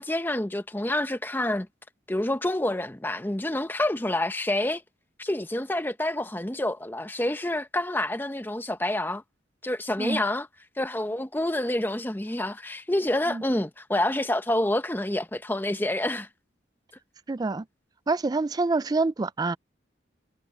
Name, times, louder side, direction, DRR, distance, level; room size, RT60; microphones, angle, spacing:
voice 1, 0.0-1.7 2.1-4.8 5.2-9.2 9.6-10.5 10.8-16.3, left 1 dB, 10° left, 0.7 m, -28 dB
voice 2, 17.3-17.7 18.1-19.6, right 3 dB, 20° right, 0.3 m, -26 dB
head